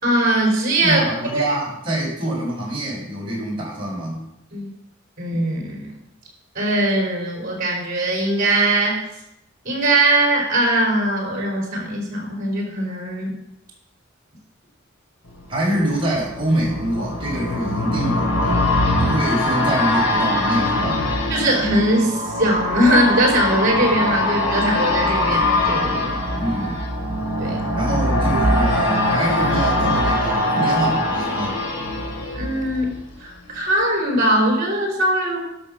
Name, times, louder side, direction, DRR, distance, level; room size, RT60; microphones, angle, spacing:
voice 1, 0.0-1.4 4.5-4.7 5.2-5.9 6.5-9.0 9.6-13.3 21.3-26.2 27.4-27.7 32.3-32.9 33.2-35.4, right 1 dB, 45° right, 0 dB, 4.4 m, -20 dB
voice 2, 0.8-4.3 15.5-18.6 19.0-21.1 26.3-26.8 27.7-31.6, right 1 dB, 25° right, -5 dB, 5.2 m, -25 dB
sound 1, 15.4-33.2 33.5-33.6, left 1 dB, 85° left, 2.9 m, -22 dB
12.0 x 6.2 x 6.4 m, 0.82 s
head